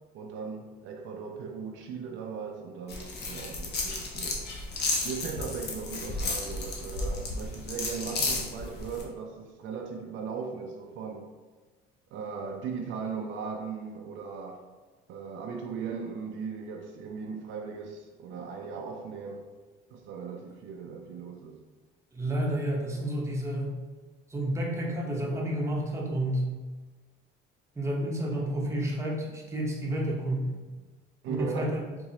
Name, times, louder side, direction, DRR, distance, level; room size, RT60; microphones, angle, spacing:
voice 1, 0.1-4.5 5.0-11.3 12.1-14.6 15.1-19.5 19.9-21.6 31.2-31.7, right 5 dB, 65° right, 2 dB, 0.5 m, -38 dB
sound 1, 2.9-9.0, left 3 dB, 55° left, 0.8 m, -33 dB
voice 2, 22.1-23.8 24.3-26.5 27.8-30.6 31.3-31.8, right 1 dB, 15° right, -2 dB, 0.8 m, -30 dB
4.1 x 2.6 x 2.8 m, 1.3 s
cardioid pair, 105°, 21 cm